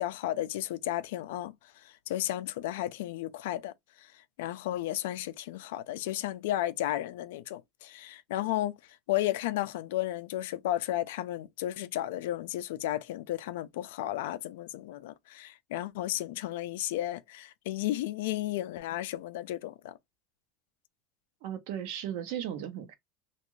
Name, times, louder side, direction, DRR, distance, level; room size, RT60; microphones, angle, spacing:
voice 1, 0.0-3.7 4.0-4.1 4.4-8.8 9.1-20.0, left 14 dB, 85° left, 0.4 m, -33 dB
voice 2, 21.4-23.0, right 10 dB, 70° right, 0.7 m, -36 dB
2.4 x 2.3 x 3.1 m
supercardioid pair, 125°, 0 cm